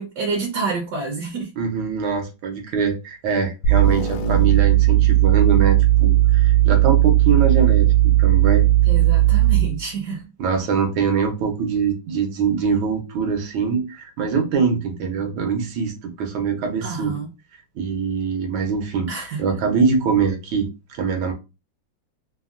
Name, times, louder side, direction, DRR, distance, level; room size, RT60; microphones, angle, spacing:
voice 1, 0.0-1.5 8.9-10.2 16.8-17.3 19.1-19.4, right 4 dB, 70° right, 1.1 m, -28 dB
voice 2, 1.6-8.6 10.4-17.1 17.7-21.3, right 5 dB, 90° right, 1.6 m, -23 dB
sound 1, 3.6-9.8, right 14 dB, 70° left, 0.9 m, -16 dB
3.6 x 2.1 x 2.4 m
omnidirectional pair, 2.2 m